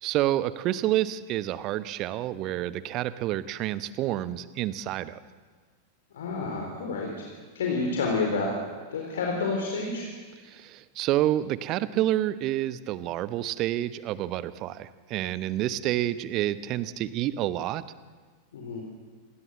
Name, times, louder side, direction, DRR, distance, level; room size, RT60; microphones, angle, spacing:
voice 1, 0.0-5.2 10.4-17.8, right 13 dB, 40° right, 15 dB, 1.0 m, -28 dB
voice 2, 6.1-7.1 7.5-8.5 8.9-10.1 18.5-18.8, left 4 dB, 60° left, 1 dB, 4.1 m, -29 dB
27.0 x 20.5 x 7.6 m, 1.5 s
figure-of-eight pair, 90°, 0 cm